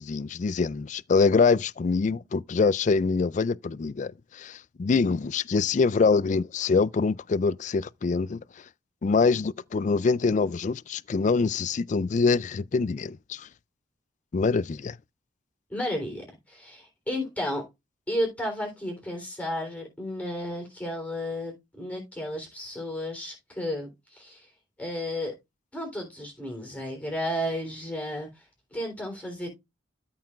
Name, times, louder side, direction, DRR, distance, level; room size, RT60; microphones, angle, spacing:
voice 1, 0.0-8.4 9.0-13.5 14.3-15.0, left 4 dB, 40° left, 0.3 m, -24 dB
voice 2, 15.7-17.6 18.1-24.5 24.8-25.4 25.7-29.5, equal, 10° left, 3.3 m, -33 dB
13.5 x 5.8 x 2.3 m
head